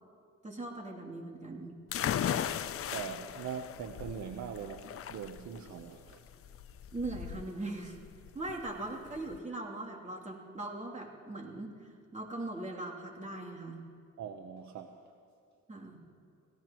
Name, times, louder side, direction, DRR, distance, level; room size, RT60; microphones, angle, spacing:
voice 1, 0.4-1.8 6.9-8.0 8.3-13.8 15.7-16.0, right 2 dB, 25° right, -2 dB, 3.0 m, -40 dB
sound 1, 1.9-9.4, left 9 dB, 50° left, 0.6 m, -37 dB
voice 2, 2.9-6.2 14.2-15.0, right 7 dB, 65° right, 6 dB, 0.9 m, -41 dB
27.0 x 17.5 x 3.1 m, 2.3 s
cardioid pair, 90°, 30 cm